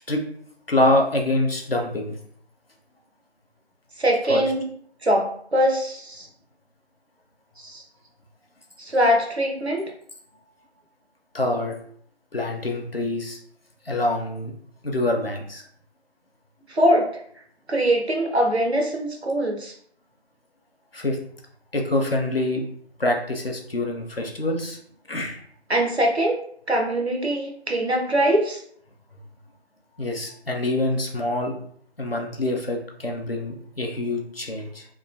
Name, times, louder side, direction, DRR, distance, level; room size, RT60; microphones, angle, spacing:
voice 1, 0.7-2.1 4.3-4.4 11.3-11.8 12.3-13.4 13.9-14.5 14.8-15.6 20.9-21.2 21.7-22.6 23.0-24.8 25.1-25.4 30.0-31.6 32.0-34.9, left 1 dB, 60° left, 2 dB, 0.6 m, -25 dB
voice 2, 4.0-4.7 5.0-6.3 7.6-7.8 8.8-9.8 16.7-17.1 17.7-19.7 25.7-26.4 26.7-28.6, equal, 70° right, 0 dB, 0.9 m, -22 dB
3.0 x 2.2 x 2.5 m, 0.62 s
figure-of-eight pair, 175°, 33 cm